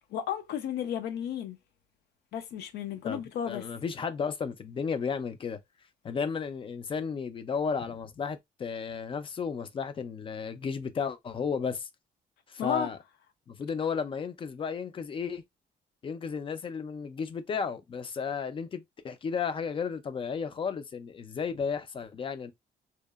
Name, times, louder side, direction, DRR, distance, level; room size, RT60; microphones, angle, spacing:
voice 1, 0.1-1.6 2.3-3.7 12.6-12.9, left 9 dB, 90° left, 0.5 m, -33 dB
voice 2, 3.5-5.6 6.0-11.9 12.5-13.0 13.5-15.4 16.0-22.5, left 6 dB, 30° left, 0.3 m, -33 dB
2.8 x 2.0 x 2.2 m
cardioid pair, 125°, 17 cm